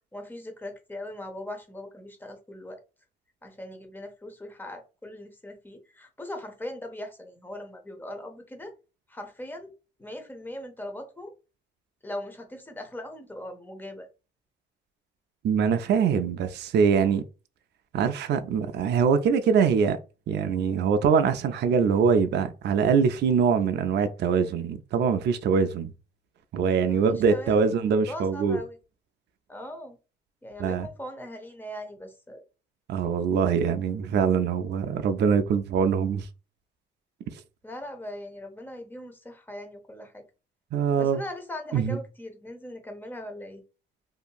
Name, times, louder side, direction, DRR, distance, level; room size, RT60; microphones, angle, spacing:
voice 1, 0.1-2.8 3.4-8.7 9.1-9.7 10.0-11.3 12.0-14.1 26.9-27.7 28.1-28.8 29.5-30.0 30.4-32.4 37.6-40.2 41.0-43.6, left 1 dB, 10° left, 0.7 m, -40 dB
voice 2, 15.4-17.2 17.9-20.0 20.3-25.9 26.5-28.6 30.6-30.9 32.9-36.3 40.7-41.2 41.7-42.0, right 6 dB, 60° right, 0.4 m, -23 dB
2.8 x 2.5 x 2.3 m
cardioid pair, 90°, 20 cm